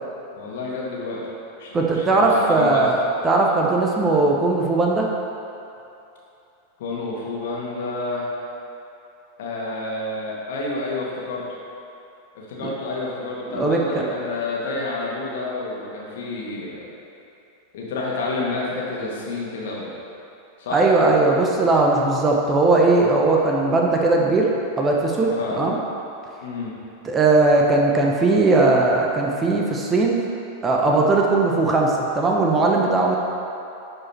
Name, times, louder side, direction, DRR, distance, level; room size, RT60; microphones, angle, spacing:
voice 1, 0.3-1.2 1.6-2.9 6.8-8.3 9.4-11.4 12.3-16.9 17.7-19.9 20.6-20.8 25.3-25.6 26.4-26.8, left 3 dB, 55° left, -4 dB, 2.0 m, -29 dB
voice 2, 1.7-3.0 3.2-5.1 12.6-12.7 13.5-13.8 20.7-24.5 24.8-25.8 27.0-30.2 30.6-33.2, right 3 dB, 20° right, -1 dB, 1.0 m, -18 dB
11.0 x 5.1 x 4.4 m, 2.8 s
figure-of-eight pair, 90°, 0 cm